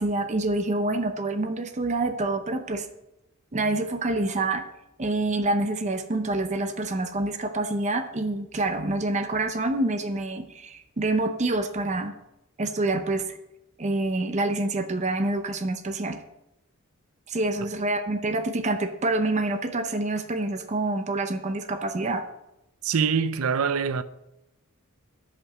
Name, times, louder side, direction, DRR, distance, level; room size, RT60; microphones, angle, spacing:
voice 1, 0.0-2.9 3.5-4.6 5.0-12.1 12.6-13.4 13.8-16.2 17.3-22.2, right 2 dB, 35° right, 0.7 m, -27 dB
voice 2, 22.8-24.0, right 6 dB, 80° right, 0.6 m, -24 dB
11.0 x 5.1 x 6.7 m
head